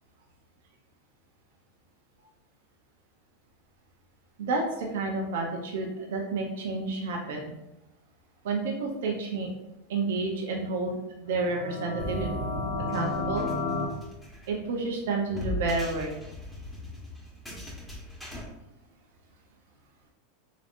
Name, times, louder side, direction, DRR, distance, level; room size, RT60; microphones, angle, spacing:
voice 1, 4.4-7.5 8.4-9.5 9.9-12.4 12.8-13.5 14.5-16.1, right 3 dB, 75° right, 0 dB, 0.7 m, -30 dB
sound 1, 11.3-13.9, left 2 dB, 60° left, 0.8 m, -32 dB
sound 2, 12.0-18.4, left 1 dB, 10° left, 1.2 m, -39 dB
3.8 x 3.5 x 2.5 m, 0.94 s
hypercardioid pair, 115°, 0 cm